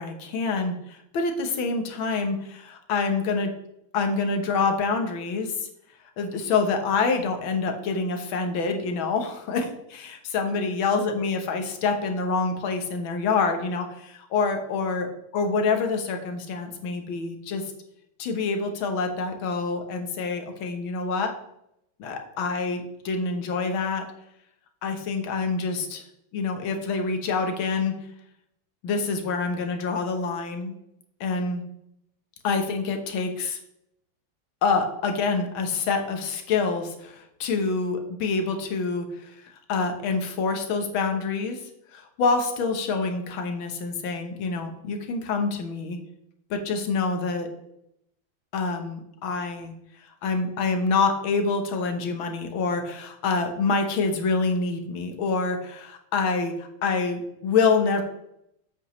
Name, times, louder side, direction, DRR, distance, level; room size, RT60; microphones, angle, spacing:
voice 1, 0.0-3.5 3.9-5.7 6.2-15.1 15.3-17.7 18.2-21.3 22.0-24.1 24.8-26.0 26.3-27.9 28.8-30.7 31.2-31.6 32.4-33.6 34.6-39.4 39.7-41.6 41.9-46.0 46.5-47.5 48.5-49.7 50.2-58.0, left 4 dB, 80° left, 5 dB, 1.9 m, -26 dB
7.9 x 7.9 x 3.1 m, 0.78 s
omnidirectional pair, 2.2 m